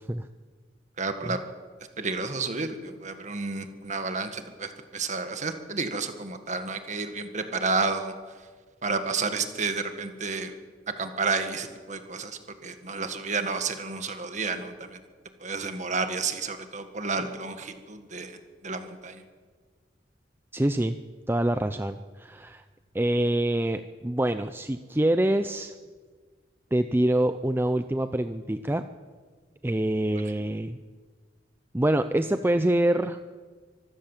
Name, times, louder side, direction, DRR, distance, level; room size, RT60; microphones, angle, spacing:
voice 1, 1.0-1.4 2.0-8.1 8.8-10.5 11.0-15.0 15.4-18.4 18.6-19.2, right 4 dB, 40° right, 7 dB, 1.8 m, -31 dB
voice 2, 20.5-21.0 21.3-22.6 22.9-25.7 26.7-28.8 29.6-30.8 31.7-33.2, right 1 dB, 10° right, 9 dB, 0.5 m, -25 dB
25.0 x 14.5 x 7.4 m, 1.5 s
head